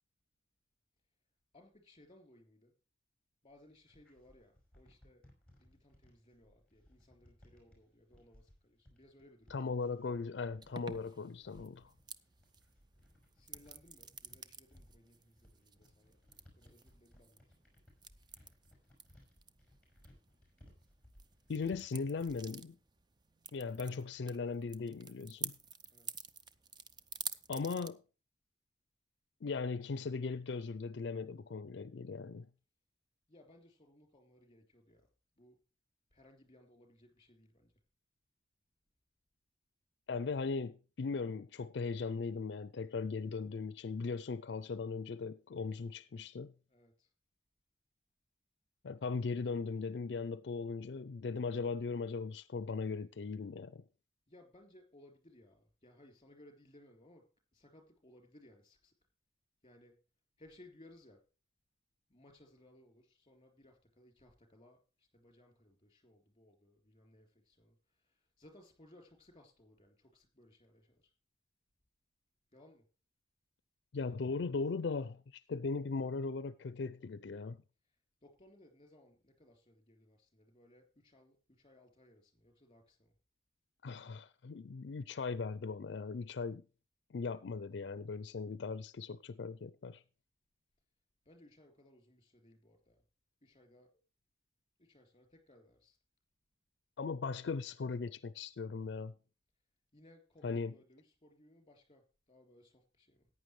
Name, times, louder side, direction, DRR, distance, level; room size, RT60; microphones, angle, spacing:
voice 1, 1.5-2.7 3.4-5.2 5.6-9.7 13.3-16.2 16.6-17.6 25.9-26.3 33.3-35.1 35.4-35.6 36.1-37.7 46.7-47.1 54.3-58.9 59.6-60.0 60.4-61.2 62.1-71.1 72.5-72.9 77.8-83.2 91.2-93.0 93.4-94.0 94.8-96.0 99.9-103.3, left 1 dB, 30° left, 3.3 m, -63 dB
sound 1, 3.5-22.6, left 1 dB, 5° left, 5.5 m, -63 dB
voice 2, 9.5-11.9 21.5-22.8 23.5-25.6 27.5-28.0 29.4-32.5 40.1-46.5 48.8-53.9 73.9-77.6 83.8-86.6 87.1-90.0 97.0-99.1 100.4-100.7, left 4 dB, 70° left, 0.4 m, -38 dB
sound 2, 10.6-27.9, right 6 dB, 25° right, 0.5 m, -50 dB
14.5 x 9.6 x 3.2 m
head